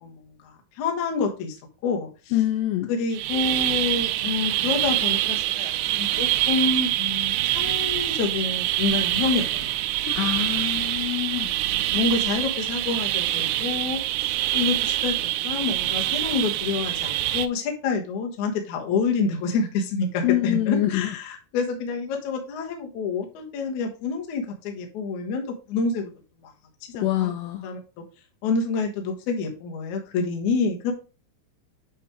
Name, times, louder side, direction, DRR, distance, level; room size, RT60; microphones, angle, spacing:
voice 1, 0.0-2.1 2.9-9.7 11.9-26.1 26.9-27.3 27.6-27.8 28.4-30.9, left 4 dB, 65° left, 1.9 m, -28 dB
voice 2, 2.3-2.9 10.1-11.5 20.2-21.2 27.0-27.7, left 14 dB, 85° left, 2.5 m, -25 dB
sound 1, 3.1-17.5, right 15 dB, 85° right, 2.7 m, -25 dB
8.6 x 3.4 x 4.8 m
omnidirectional pair, 5.5 m